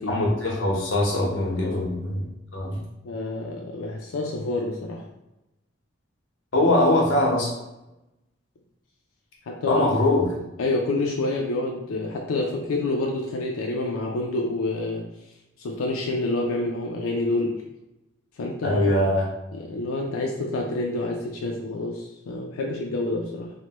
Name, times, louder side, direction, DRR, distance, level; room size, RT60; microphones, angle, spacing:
voice 1, 0.1-2.2 2.5-2.8 6.5-7.5 9.6-10.3 18.6-19.3, left 1 dB, 65° left, -3 dB, 0.9 m, -22 dB
voice 2, 3.0-5.0 9.5-10.0 10.6-15.1 15.6-17.6 18.4-18.8 19.5-23.5, left 2 dB, 90° left, 0 dB, 0.4 m, -28 dB
3.2 x 2.1 x 2.9 m, 0.93 s
head